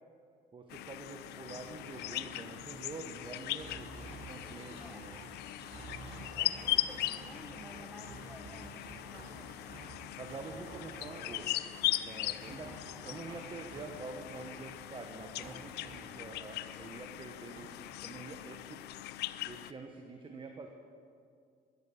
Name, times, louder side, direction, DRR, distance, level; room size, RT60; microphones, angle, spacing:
voice 1, 0.5-5.2 8.5-8.7 10.2-11.5 11.8-17.8 18.0-18.8 19.5-20.7, right 3 dB, 30° right, 4 dB, 1.2 m, -47 dB
sound 1, 0.7-19.7, left 15 dB, 80° left, 0.5 m, -39 dB
sound 2, 1.5-17.2 17.6-18.9, right 2 dB, 60° right, 3.8 m, -51 dB
voice 2, 5.3-9.9, right 1 dB, 5° right, 2 dB, 1.2 m, -54 dB
13.5 x 10.5 x 7.2 m, 2.3 s
cardioid pair, 110°, 17 cm